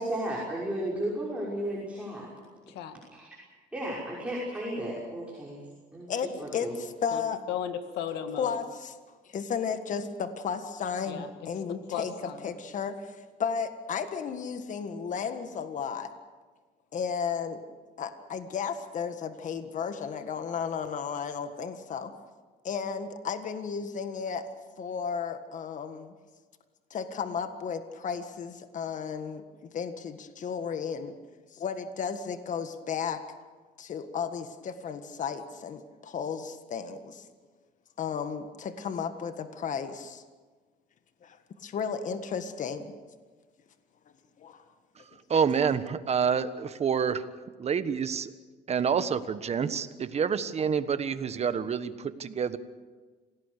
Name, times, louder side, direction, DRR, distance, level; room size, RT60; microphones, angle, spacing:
voice 1, 0.0-2.3 3.7-5.6 5.9-6.1 6.4-6.7, right 1 dB, 5° right, -5 dB, 6.0 m, -33 dB
voice 2, 2.7-3.0 7.1-7.2 7.5-8.6 11.1-11.3 11.9-12.5, left 9 dB, 85° left, 8 dB, 2.0 m, -35 dB
voice 3, 6.1-7.4 8.4-8.9 9.3-16.1 16.9-17.6 18.0-22.1 22.6-24.5 24.8-26.1 26.9-31.1 31.5-33.2 33.8-37.2 38.0-40.2 41.2-42.9 44.4-44.6, left 6 dB, 50° left, 9 dB, 1.7 m, -34 dB
voice 4, 45.3-47.2 47.6-48.3 48.7-52.6, right 6 dB, 40° right, 12 dB, 1.3 m, -28 dB
27.0 x 18.0 x 6.8 m, 1.4 s
cardioid pair, 110°, 17 cm